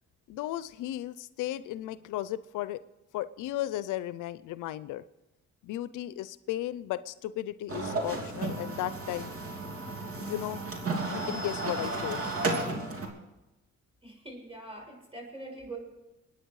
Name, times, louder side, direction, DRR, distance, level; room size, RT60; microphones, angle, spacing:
voice 1, 0.3-2.8 3.1-5.0 5.6-9.3 10.2-10.6 11.1-12.3, left 14 dB, 85° left, 15 dB, 0.6 m, -35 dB
sound 1, 7.7-13.1, right 2 dB, 50° right, 3.0 m, -33 dB
voice 2, 14.0-15.8, right 2 dB, 20° right, 0 dB, 6.4 m, -43 dB
23.5 x 9.7 x 4.8 m, 1.0 s
cardioid pair, 90°, 30 cm